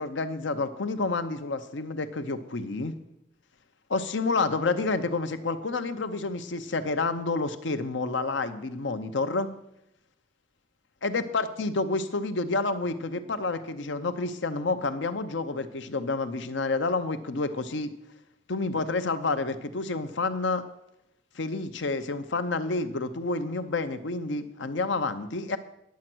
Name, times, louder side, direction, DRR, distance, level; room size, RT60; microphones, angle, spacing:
voice 1, 0.0-2.9 3.9-9.5 11.0-17.9 18.5-20.6 21.3-25.6, left 3 dB, 80° left, 10 dB, 0.8 m, -29 dB
10.5 x 7.6 x 6.1 m, 0.85 s
head